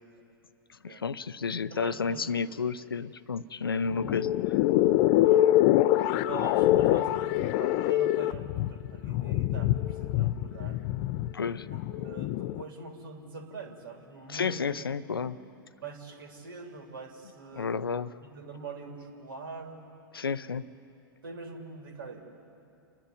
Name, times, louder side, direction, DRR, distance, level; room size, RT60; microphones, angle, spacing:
voice 1, 0.8-4.3 11.3-11.7 14.3-15.4 17.5-18.1 20.1-20.7, left 5 dB, 90° left, 15 dB, 0.6 m, -31 dB
voice 2, 1.7-2.5 5.2-5.5 6.1-10.8 11.7-15.3 15.8-17.7 18.2-19.9 21.2-22.2, right 4 dB, 75° right, 3 dB, 3.2 m, -44 dB
sound 1, 3.9-12.6, left 14 dB, 45° left, 0.5 m, -25 dB
30.0 x 10.5 x 9.5 m, 2.7 s
hypercardioid pair, 105°, 12 cm